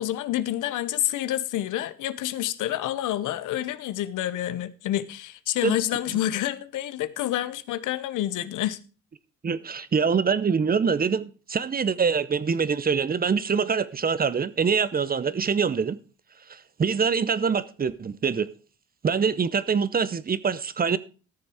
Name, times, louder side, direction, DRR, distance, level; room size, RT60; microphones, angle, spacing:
voice 1, 0.0-8.8, left 13 dB, 80° left, 0.8 m, -28 dB
voice 2, 9.4-16.0 16.5-18.5 19.0-21.0, right 6 dB, 30° right, 0.7 m, -24 dB
13.5 x 6.8 x 4.8 m
cardioid pair, 90°, 30 cm